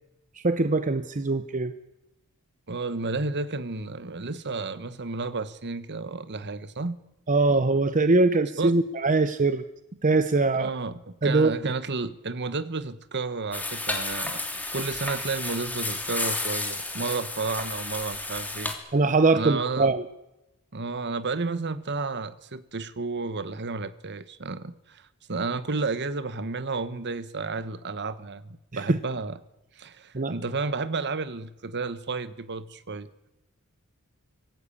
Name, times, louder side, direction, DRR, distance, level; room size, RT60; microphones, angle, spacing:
voice 1, 0.4-1.7 7.3-9.6 10.0-10.7 11.2-11.5 18.9-20.0 28.7-29.0 30.1-30.4, right 3 dB, 35° right, 11 dB, 0.8 m, -22 dB
voice 2, 2.7-7.0 8.6-8.8 10.5-14.4 14.7-18.7 19.3-19.9 20.7-29.4 29.8-33.1, right 3 dB, 50° right, 14 dB, 1.2 m, -32 dB
sound 1, 13.5-18.7, left 2 dB, 5° left, 2.9 m, -32 dB
25.0 x 18.0 x 8.6 m, 0.96 s
head